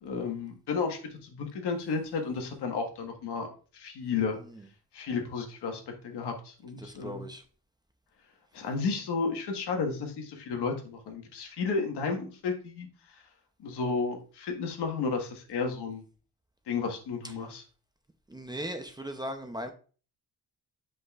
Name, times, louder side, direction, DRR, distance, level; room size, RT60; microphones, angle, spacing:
voice 1, 0.0-4.4 4.9-7.3 8.5-12.9 13.6-16.0 16.7-17.6, left 4 dB, 90° left, 3 dB, 1.5 m, -32 dB
voice 2, 6.8-7.4 17.2-17.3 18.3-19.7, equal, 10° right, 6 dB, 0.5 m, -38 dB
7.9 x 5.2 x 2.4 m, 0.38 s
wide cardioid pair, 165°, 39 cm